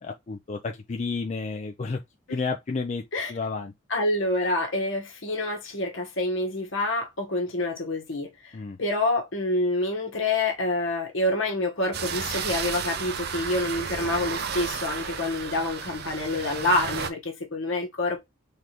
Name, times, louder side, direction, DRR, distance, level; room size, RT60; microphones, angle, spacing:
voice 1, 0.0-2.0 2.3-3.0 3.3-3.7 8.5-8.8, left 4 dB, 35° left, 0.4 m, -31 dB
voice 2, 3.9-18.2, left 2 dB, 65° left, 1.2 m, -27 dB
sound 1, 11.9-17.1, right 6 dB, 50° right, 0.6 m, -32 dB
3.8 x 3.4 x 2.9 m
head